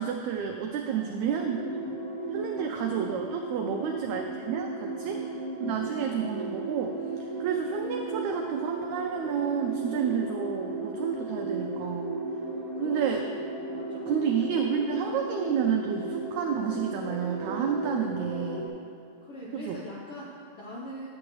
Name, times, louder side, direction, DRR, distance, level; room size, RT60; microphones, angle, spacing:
voice 1, 0.0-1.8 2.3-5.2 5.6-7.0 7.4-12.1 12.8-13.2 14.1-18.7 19.5-19.8, right 7 dB, 90° right, 3 dB, 1.6 m, -30 dB
voice 2, 0.9-1.8 2.6-2.7 3.8-3.9 5.0-5.2 5.6-5.8 12.7-13.4 13.7-14.4 19.2-21.1, equal, 75° left, -5 dB, 1.3 m, -43 dB
sound 1, 1.3-18.7, right 2 dB, 50° right, 0.8 m, -35 dB
9.6 x 8.5 x 3.1 m, 2.5 s
omnidirectional pair, 3.8 m